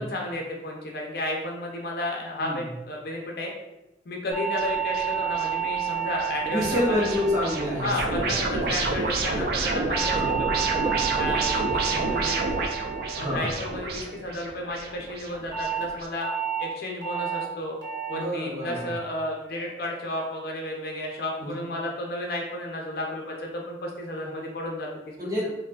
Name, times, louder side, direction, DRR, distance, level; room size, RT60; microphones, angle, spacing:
voice 1, 0.0-3.5 4.1-7.1 7.8-12.6 13.2-16.3 16.6-17.8 18.1-25.2, left 1 dB, 55° left, 0 dB, 0.4 m, -33 dB
sound 1, 4.3-8.8 9.9-14.4 15.5-15.8 16.2-16.6 17.0-17.4 17.8-18.2 18.6-19.0 19.4-19.8, right 8 dB, 85° right, 1.1 m, -31 dB
sound 2, 4.6-16.1, right 3 dB, 55° right, 0.3 m, -30 dB
voice 2, 6.5-8.9 10.1-10.3 13.2-13.5 18.1-18.9 21.4-21.5 24.2-24.3 25.2-25.6, left 1 dB, 20° right, -5 dB, 0.6 m, -28 dB
3.2 x 2.5 x 2.3 m, 0.95 s
head